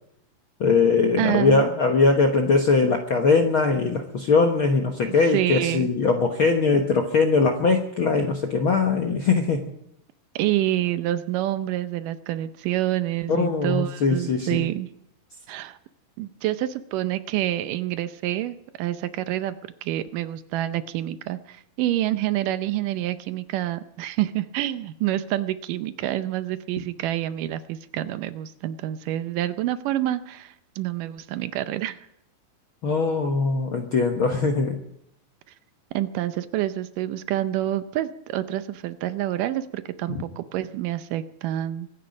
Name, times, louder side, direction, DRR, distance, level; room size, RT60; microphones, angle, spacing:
voice 1, 0.6-9.6 13.3-14.7 32.8-34.8 40.1-40.2, left 4 dB, 65° left, 3 dB, 1.3 m, -21 dB
voice 2, 1.2-1.6 5.3-5.9 10.4-14.9 15.5-15.8 16.2-32.1 35.9-41.9, right 14 dB, 80° right, 12 dB, 2.2 m, -27 dB
24.0 x 10.0 x 5.2 m, 0.77 s
omnidirectional pair, 4.0 m